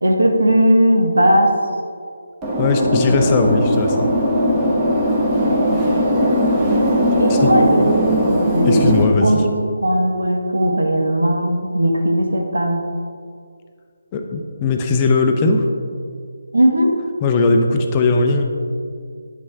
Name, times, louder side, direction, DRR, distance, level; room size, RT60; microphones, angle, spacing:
voice 1, 0.0-1.5 3.0-3.1 5.2-6.1 7.2-7.9 8.3-9.0 9.2-9.4 9.8-12.8 16.5-17.0, equal, 80° right, 2 dB, 1.2 m, -17 dB
sound 1, 2.4-9.0, equal, 10° right, 1.1 m, -18 dB
voice 2, 2.6-4.1 7.3-7.5 8.6-9.5 14.1-15.7 17.2-18.4, left 3 dB, 20° left, 3 dB, 0.5 m, -18 dB
9.1 x 5.3 x 3.4 m, 2.2 s
figure-of-eight pair, 155°, 0 cm